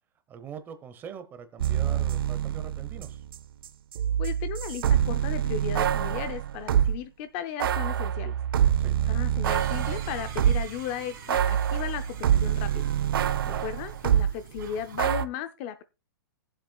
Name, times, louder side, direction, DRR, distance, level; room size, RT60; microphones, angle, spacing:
voice 1, 0.3-3.2 8.8-9.0 13.5-13.6, right 7 dB, 15° right, 11 dB, 0.8 m, -42 dB
sound 1, 1.6-7.0 7.6-10.8 11.3-14.3 15.0-15.3, right 10 dB, 75° right, 0.6 m, -26 dB
voice 2, 4.2-8.3 9.1-12.9 13.4-15.8, left 9 dB, 30° left, 11 dB, 0.5 m, -36 dB
sound 2, 9.4-15.0, right 7 dB, 60° right, 2.8 m, -45 dB
20.0 x 7.5 x 2.3 m, 0.28 s
hypercardioid pair, 155°, 12 cm